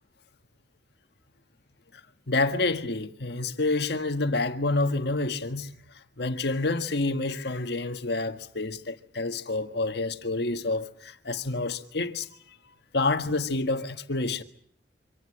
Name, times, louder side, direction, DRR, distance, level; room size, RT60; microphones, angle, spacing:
voice 1, 2.3-5.7 6.2-12.3 12.9-14.4, left 2 dB, 65° left, 1.7 m, -28 dB
25.5 x 18.0 x 9.8 m
head